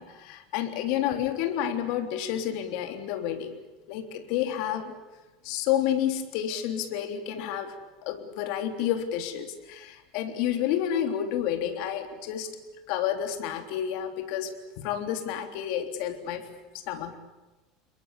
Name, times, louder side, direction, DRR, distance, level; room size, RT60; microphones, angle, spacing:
voice 1, 0.0-3.6 3.9-5.0 5.4-7.7 8.0-12.5 12.9-16.5 16.9-17.2, left 10 dB, 65° left, 6 dB, 3.5 m, -30 dB
27.5 x 22.0 x 8.4 m, 1.1 s
cardioid pair, 150°, 0 cm